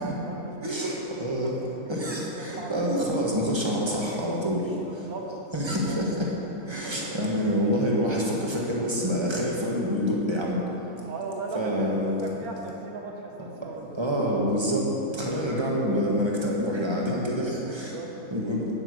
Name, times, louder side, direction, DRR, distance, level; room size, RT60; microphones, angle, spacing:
voice 1, 0.0-2.0 2.3-3.0 4.0-6.0 6.8-7.2 11.0-14.0 15.1-15.5 17.4-18.6, right 3 dB, 75° right, 1 dB, 1.6 m, -39 dB
voice 2, 0.6-1.6 1.9-5.1 5.5-6.3 6.7-10.6 11.5-12.2 13.9-18.0 18.3-18.7, equal, 20° right, -3 dB, 1.6 m, -27 dB
9.0 x 9.0 x 6.5 m, 3.0 s
omnidirectional pair, 1.6 m